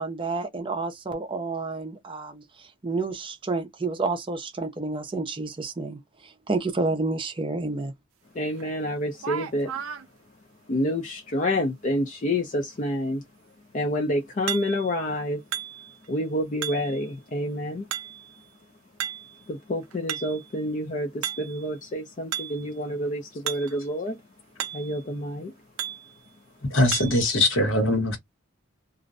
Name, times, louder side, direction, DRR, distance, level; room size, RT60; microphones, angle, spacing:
voice 1, 0.0-7.9, right 3 dB, 25° right, 0.5 m, -30 dB
voice 2, 8.3-9.7 10.7-13.2 13.7-15.4 16.1-17.9 19.5-24.2 24.7-25.5, left 1 dB, 35° left, 0.4 m, -28 dB
sound 1, 8.6-8.7 9.1-10.1 14.5-15.0 15.5-16.1 16.6-17.0 17.9-18.4 19.0-19.4 19.8-20.5 21.2-21.7 22.3-22.6 23.5-23.8 24.1-24.2 24.6-25.0 25.8-26.1 26.9-27.3, right 10 dB, 85° right, 0.4 m, -34 dB
voice 3, 26.7-28.2, left 1 dB, 70° left, 1.0 m, -21 dB
2.5 x 2.1 x 2.4 m
head